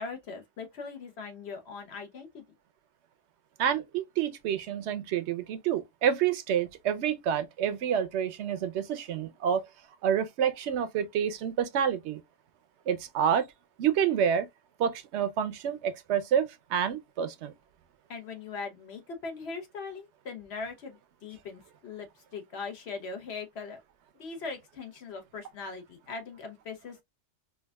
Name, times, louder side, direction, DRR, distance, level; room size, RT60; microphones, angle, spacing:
voice 1, 0.0-2.4 18.1-23.8 24.2-27.0, left 4 dB, 60° left, 1.2 m, -40 dB
voice 2, 3.6-9.6 10.0-12.2 12.9-13.5 13.8-14.5 14.8-17.5, right 8 dB, 65° right, 0.8 m, -28 dB
4.6 x 2.5 x 2.2 m
omnidirectional pair, 1.3 m